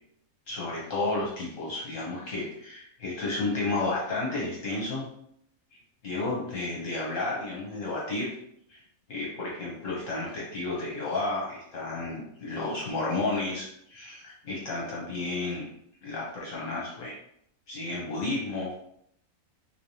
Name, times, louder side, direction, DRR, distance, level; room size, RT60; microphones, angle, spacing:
voice 1, 0.5-5.1 6.0-8.3 8.7-8.8 9.1-15.7 16.0-17.1 17.7-18.7, left 2 dB, 60° left, -5 dB, 1.3 m, -32 dB
3.5 x 3.2 x 2.8 m, 0.71 s
omnidirectional pair, 1.6 m